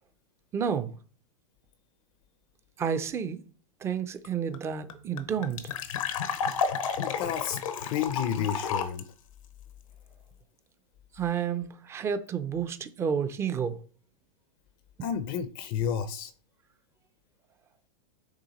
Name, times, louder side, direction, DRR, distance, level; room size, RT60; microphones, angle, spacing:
voice 1, 0.5-0.9 2.8-3.4 3.8-5.7 11.1-13.8, right 7 dB, 15° right, 0.5 m, -30 dB
sound 1, 4.2-4.3 4.5-4.6 4.9-9.0, left 6 dB, 85° left, 1.0 m, -31 dB
voice 2, 7.0-9.0 15.0-16.3, left 8 dB, 35° left, 0.6 m, -31 dB
8.8 x 3.3 x 4.1 m
supercardioid pair, 150°, 17 cm